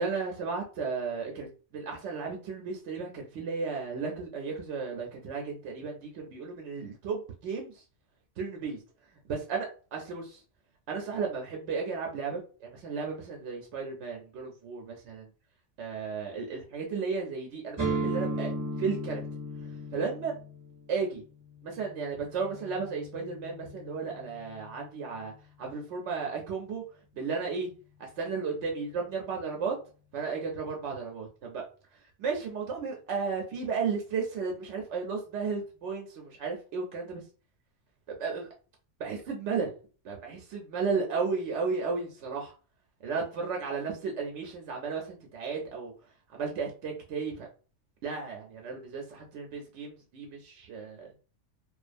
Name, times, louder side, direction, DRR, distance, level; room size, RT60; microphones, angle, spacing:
voice 1, 0.0-7.8 8.4-8.8 9.3-10.4 10.9-15.3 15.8-18.5 18.8-19.2 19.9-20.3 20.9-21.2 21.6-25.3 25.6-26.8 27.1-27.7 28.0-29.8 30.1-31.6 32.2-37.2 38.2-38.5 39.0-39.7 40.0-42.6 43.0-45.9 46.3-47.5 48.0-51.1, right 5 dB, 70° right, 1 dB, 0.9 m, -34 dB
sound 1, 17.8-25.5, right 1 dB, 25° right, 0.5 m, -37 dB
2.4 x 2.3 x 2.5 m, 0.36 s
omnidirectional pair, 1.2 m